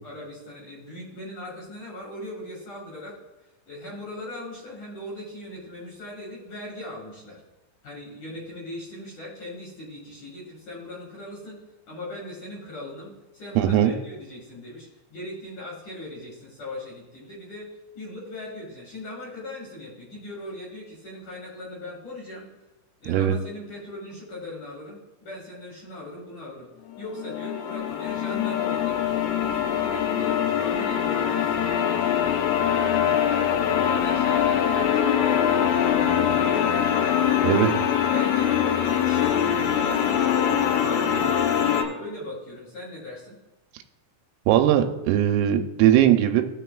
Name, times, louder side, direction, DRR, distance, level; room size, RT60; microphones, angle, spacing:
voice 1, 0.0-7.4 7.8-11.6 11.9-17.7 17.9-22.4 23.0-26.7 27.0-32.2 32.7-37.1 37.7-43.4, left 1 dB, 50° left, -5 dB, 2.5 m, -39 dB
voice 2, 13.6-13.9 23.1-23.4 37.4-37.7 44.5-46.4, right 11 dB, 85° right, 6 dB, 3.2 m, -19 dB
sound 1, 26.9-41.8, left 9 dB, 80° left, 3.4 m, -23 dB
17.5 x 6.6 x 2.3 m, 1.0 s
omnidirectional pair, 5.9 m